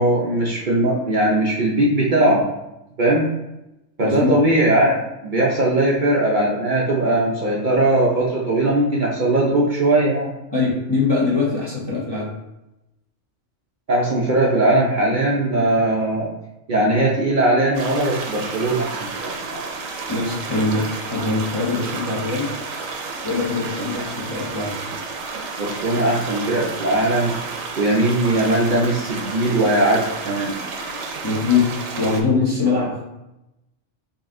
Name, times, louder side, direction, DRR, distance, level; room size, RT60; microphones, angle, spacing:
voice 1, 0.0-2.4 3.0-3.3 4.0-10.3 13.9-16.3 16.7-19.6 25.6-27.3 27.7-30.6 32.8-32.9, right 1 dB, 50° right, -4 dB, 0.7 m, -19 dB
voice 2, 4.0-4.4 10.5-12.3 20.1-22.5 23.2-24.8 31.2-33.0, left 4 dB, 25° left, -6 dB, 0.6 m, -22 dB
sound 1, 17.7-32.2, right 4 dB, 90° right, 1.0 m, -31 dB
3.9 x 2.5 x 3.6 m, 0.91 s
omnidirectional pair, 1.3 m